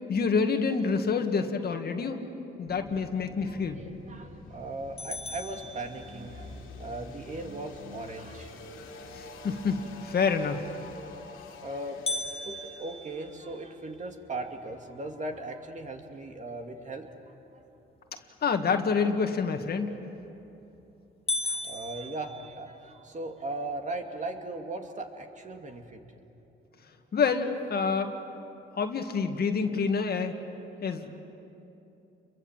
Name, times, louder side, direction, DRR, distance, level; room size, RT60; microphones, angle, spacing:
voice 1, 0.1-2.2 2.6-3.8 9.1-10.6 18.4-19.9 27.1-28.1 28.8-30.3 30.8-31.1, left 5 dB, 50° left, 5 dB, 2.0 m, -27 dB
sound 1, 2.7-15.5, left 3 dB, 90° left, 3.0 m, -47 dB
voice 2, 3.4-9.0 11.6-12.2 12.5-17.2 17.5-17.6 21.4-26.0, right 2 dB, 40° right, 4 dB, 2.5 m, -38 dB
sound 2, 5.0-6.6 12.1-14.2 14.7-14.8 15.3-15.4 16.1-16.4 20.0-20.4 20.8-20.9 21.3-23.0, left 2 dB, 30° left, 1.1 m, -36 dB
29.5 x 23.0 x 7.5 m, 2.9 s
cardioid pair, 90°, 20 cm